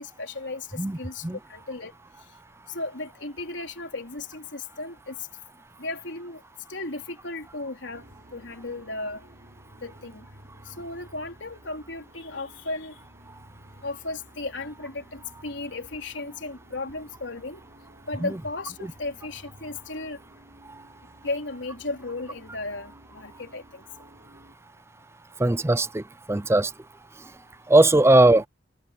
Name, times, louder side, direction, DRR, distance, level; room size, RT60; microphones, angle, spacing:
voice 1, 0.0-1.2 1.5-1.9 2.7-5.2 5.8-6.4 6.7-9.2 9.8-10.3 10.7-12.9 13.8-17.6 18.1-20.2 21.2-23.8, left 2 dB, 85° left, 3.6 m, -35 dB
sound 1, 7.9-24.6, equal, 55° right, 6.7 m, -53 dB
voice 2, 25.4-26.7 27.7-28.5, right 2 dB, 15° right, 0.6 m, -19 dB
head